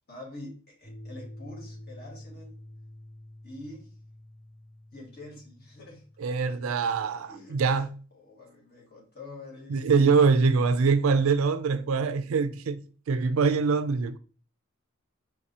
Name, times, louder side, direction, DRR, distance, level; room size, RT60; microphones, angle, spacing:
voice 1, 0.1-2.6 3.4-3.9 4.9-6.1 6.4-6.6 7.3-7.6 8.1-9.9, left 1 dB, 45° left, 1.7 m, -45 dB
sound 1, 0.8-7.9, left 1 dB, 25° left, 1.8 m, -48 dB
voice 2, 6.2-7.9 9.7-14.2, right 5 dB, 70° right, 0.4 m, -24 dB
4.7 x 3.2 x 2.8 m
head